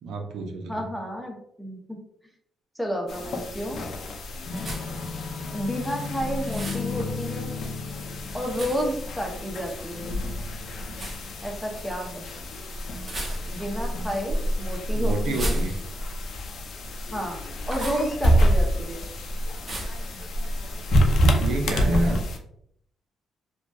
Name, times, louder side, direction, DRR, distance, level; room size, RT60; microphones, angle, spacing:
voice 1, 0.0-0.9 14.9-15.8 21.3-22.2, right 2 dB, 80° right, 2 dB, 0.5 m, -28 dB
voice 2, 0.7-2.0 2.7-3.8 5.5-7.5 8.3-10.2 11.4-12.3 13.5-15.6 17.1-19.1, equal, ahead, 0 dB, 0.6 m, -31 dB
sound 1, 3.1-22.4, equal, 65° left, 0.4 m, -27 dB
sound 2, 4.6-5.1 6.4-6.9 8.5-9.0 10.9-11.2 13.0-13.7 15.2-16.1 17.7-18.1 19.7-20.1, right 1 dB, 30° right, 0.7 m, -34 dB
2.6 x 2.2 x 2.2 m, 0.71 s
cardioid pair, 90°, 0 cm